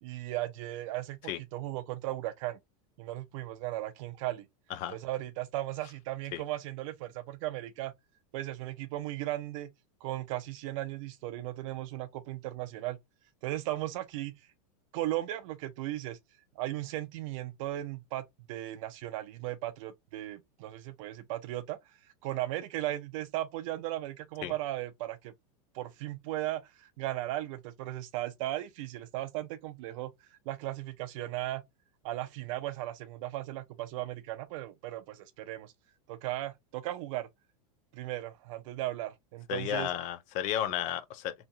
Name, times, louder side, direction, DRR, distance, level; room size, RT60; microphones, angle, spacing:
voice 1, 0.0-1.2 1.5-2.6 3.0-4.4 4.9-7.9 8.3-9.7 10.0-13.0 13.4-14.3 14.9-16.2 16.6-21.8 22.2-25.3 25.7-31.6 32.0-35.7 36.1-37.3 37.9-39.9, right 15 dB, 55° right, 0.5 m, -36 dB
voice 2, 39.5-41.3, left 11 dB, 40° left, 0.4 m, -33 dB
2.9 x 2.2 x 2.6 m
supercardioid pair, 150°, 20 cm